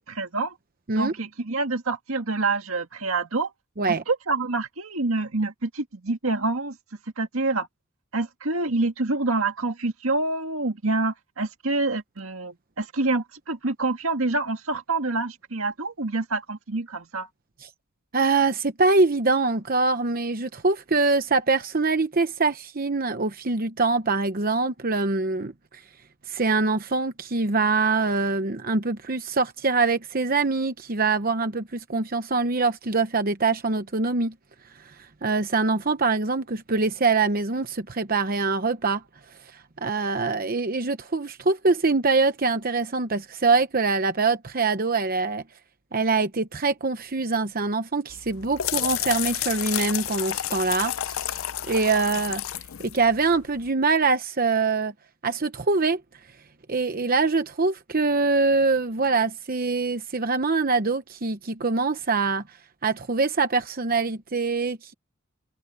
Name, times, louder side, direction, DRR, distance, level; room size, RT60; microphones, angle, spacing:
voice 1, 0.1-0.5 1.0-3.5 3.9-6.8 7.2-7.7 8.1-17.3, right 3 dB, 75° right, 2.0 m, -27 dB
voice 2, 18.1-25.8 26.3-34.3 34.8-39.0 39.5-45.4 45.9-51.4 51.7-52.4 52.8-54.9 55.2-56.0 56.7-62.6 62.8-64.9, right 3 dB, 45° right, 0.9 m, -24 dB
sound 1, 48.1-53.7, left 12 dB, 70° left, 0.6 m, -31 dB
head